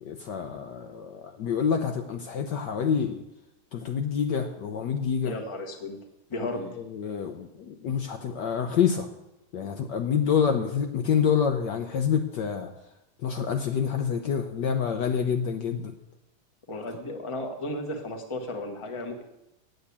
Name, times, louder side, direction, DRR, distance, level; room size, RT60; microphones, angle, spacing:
voice 1, 0.0-3.2 3.7-5.3 6.8-9.1 9.5-12.7 13.2-15.9, left 7 dB, 65° left, 5 dB, 1.2 m, -27 dB
voice 2, 5.2-6.0 6.3-6.7 16.7-19.2, left 1 dB, 20° left, 3 dB, 1.0 m, -34 dB
9.0 x 8.0 x 8.5 m, 0.93 s
omnidirectional pair, 2.3 m